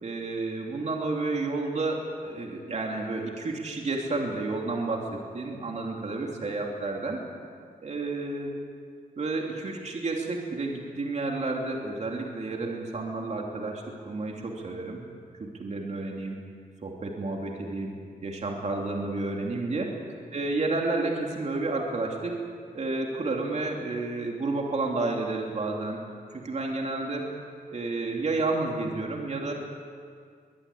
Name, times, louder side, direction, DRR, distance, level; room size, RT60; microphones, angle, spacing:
voice 1, 0.0-7.2 7.8-8.6 9.2-15.0 15.4-16.4 16.8-17.9 18.2-19.9 20.3-22.4 22.7-26.0 26.3-27.3 27.7-29.5, right 3 dB, 45° right, 0 dB, 2.9 m, -31 dB
22.0 x 21.5 x 8.6 m, 2.1 s
wide cardioid pair, 155°, 16 cm